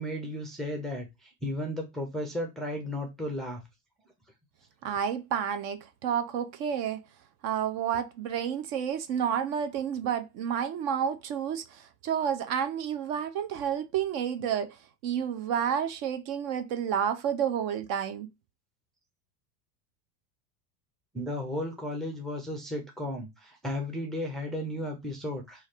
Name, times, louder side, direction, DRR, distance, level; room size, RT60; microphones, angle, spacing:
voice 1, 0.0-3.6 21.1-25.7, left 1 dB, ahead, 0.4 m, -34 dB
voice 2, 4.8-7.1 7.4-18.3, right 8 dB, 45° right, 0.5 m, -30 dB
3.1 x 2.4 x 4.2 m
supercardioid pair, 130°, 46 cm